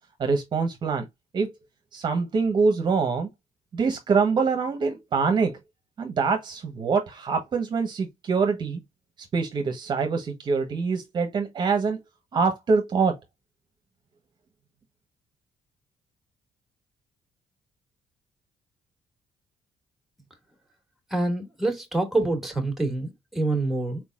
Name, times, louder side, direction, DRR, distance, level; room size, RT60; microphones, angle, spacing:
voice 1, 0.2-1.0 1.3-1.5 1.9-3.3 3.7-5.6 6.0-8.8 9.3-12.0 12.3-13.1, right 5 dB, 40° right, 1.0 m, -24 dB
voice 2, 21.1-24.0, right 2 dB, ahead, 1.9 m, -26 dB
4.5 x 3.9 x 2.4 m
cardioid pair, 130°, 11 cm